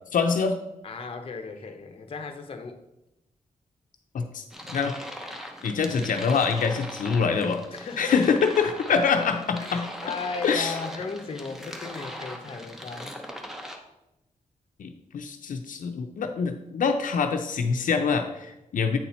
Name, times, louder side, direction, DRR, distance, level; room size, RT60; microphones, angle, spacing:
voice 1, 0.1-0.6 4.1-4.4 4.7-4.9 5.6-7.6 8.0-9.9 10.4-10.7 14.8-19.0, left 5 dB, 80° left, 5 dB, 0.5 m, -25 dB
voice 2, 0.8-2.8 7.7-8.2 8.9-9.1 9.6-13.2, left 4 dB, 45° left, 5 dB, 0.7 m, -35 dB
sound 1, 4.5-13.8, equal, 5° right, 0.8 m, -40 dB
8.5 x 4.2 x 4.2 m, 0.92 s
wide cardioid pair, 140°, 14 cm